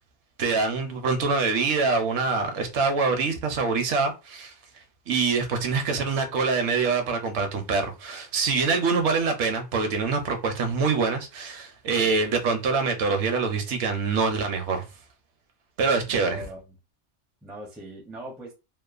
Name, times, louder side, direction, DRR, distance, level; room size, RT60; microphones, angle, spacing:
voice 1, 0.4-4.5 5.1-14.8 15.8-16.4, right 4 dB, 75° right, 0.9 m, -25 dB
voice 2, 16.1-16.7 17.4-18.5, right 1 dB, ahead, 0.4 m, -40 dB
2.9 x 2.1 x 2.3 m
omnidirectional pair, 1.2 m